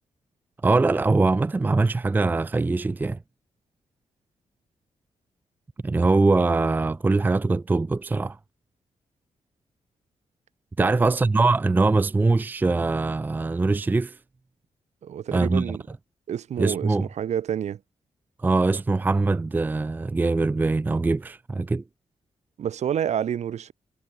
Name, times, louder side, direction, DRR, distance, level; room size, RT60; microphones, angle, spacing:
voice 1, 0.6-3.2 5.8-8.4 10.8-14.2 15.3-15.8 16.6-17.1 18.4-21.8, right 3 dB, 15° right, 0.6 m, -22 dB
voice 2, 10.8-11.1 15.0-15.8 16.3-17.8 22.6-23.7, right 9 dB, 70° right, 6.7 m, -29 dB
wide cardioid pair, 175°, 12 cm